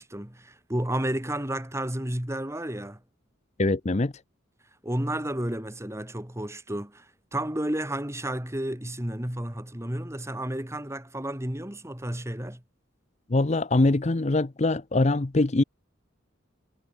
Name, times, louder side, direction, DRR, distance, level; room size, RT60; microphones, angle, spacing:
voice 1, 0.0-3.0 4.8-12.6, right 1 dB, 15° right, 2.3 m, -32 dB
voice 2, 3.6-4.1 13.3-15.6, left 2 dB, 35° left, 0.7 m, -23 dB
head